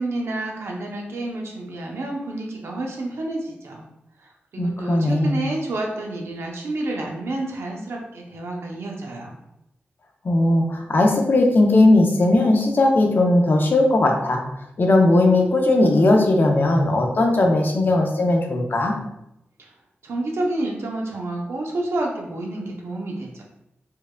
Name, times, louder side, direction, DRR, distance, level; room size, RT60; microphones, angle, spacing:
voice 1, 0.0-3.8 4.2-9.4 19.6-19.7 20.0-23.4, right 2 dB, 80° right, 0 dB, 0.7 m, -29 dB
voice 2, 4.6-5.4 10.2-14.4 14.8-18.9, left 2 dB, 50° left, 1 dB, 0.6 m, -18 dB
4.5 x 2.3 x 2.2 m, 0.85 s
cardioid pair, 75°, 4 cm